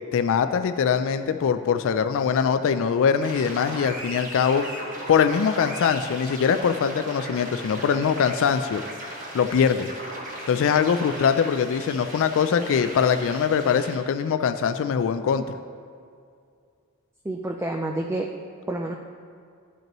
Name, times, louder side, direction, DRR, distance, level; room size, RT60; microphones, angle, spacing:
voice 1, 0.1-4.6 5.1-8.8 9.3-9.9 10.5-15.4, left 7 dB, 65° left, 9 dB, 0.3 m, -22 dB
sound 1, 3.2-14.0, right 1 dB, 40° right, 1.3 m, -38 dB
voice 2, 17.2-18.3 18.7-18.9, right 1 dB, 10° right, 2 dB, 0.3 m, -28 dB
12.0 x 5.2 x 3.0 m, 2.3 s
head